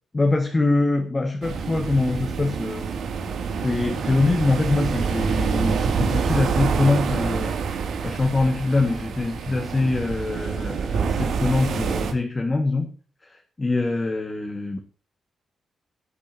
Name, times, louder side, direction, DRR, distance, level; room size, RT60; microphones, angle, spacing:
voice 1, 0.1-2.9 3.6-7.5 8.0-12.9 13.2-14.8, left 3 dB, 25° left, 3 dB, 1.9 m, -23 dB
sound 1, 1.4-12.1, right 6 dB, 80° right, 2.7 m, -26 dB
20.5 x 8.6 x 2.9 m, 0.41 s
cardioid pair, 110°, 0 cm